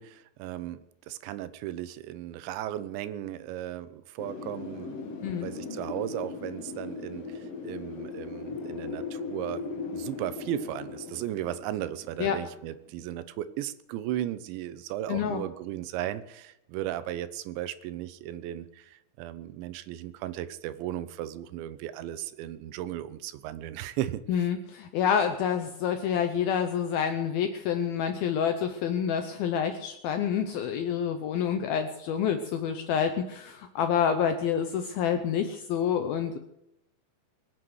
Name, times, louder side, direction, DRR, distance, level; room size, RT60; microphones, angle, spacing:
voice 1, 0.0-5.1 5.4-9.6 9.9-24.5, right 12 dB, 80° right, 14 dB, 3.0 m, -36 dB
Wind, 4.2-12.9, left 4 dB, 60° left, 1.7 m, -39 dB
voice 2, 15.1-15.4 24.3-36.4, left 8 dB, 80° left, 7 dB, 2.2 m, -28 dB
22.0 x 7.7 x 7.9 m, 0.83 s
omnidirectional pair, 5.3 m